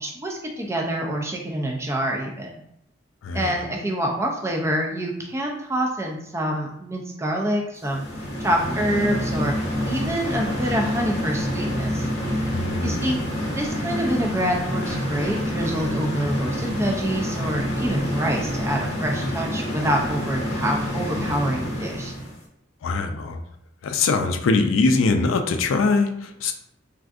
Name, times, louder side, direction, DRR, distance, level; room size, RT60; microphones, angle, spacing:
voice 1, 0.0-2.5 3.3-8.0 8.4-9.5 9.8-12.0 12.8-13.2 13.6-22.1, right 1 dB, 15° right, 0 dB, 0.3 m, -26 dB
voice 2, 3.2-3.6 12.5-13.2 22.8-23.4 23.8-26.5, left 3 dB, 80° left, 6 dB, 0.4 m, -22 dB
sound 1, 7.8-22.4, equal, 35° left, 0.7 m, -27 dB
3.5 x 2.5 x 2.4 m, 0.76 s
head